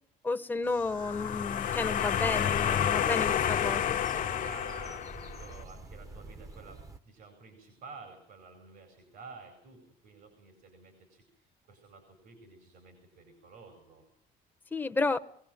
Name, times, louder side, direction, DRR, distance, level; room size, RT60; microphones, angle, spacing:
voice 1, 0.2-3.8 14.7-15.2, left 3 dB, 10° left, 0.9 m, -31 dB
sound 1, 0.8-5.5, left 9 dB, 55° left, 0.9 m, -30 dB
sound 2, 2.0-7.0, right 2 dB, 20° right, 0.9 m, -47 dB
voice 2, 3.5-14.0, right 4 dB, 75° right, 5.0 m, -51 dB
22.0 x 17.0 x 8.9 m
cardioid pair, 110°, 17 cm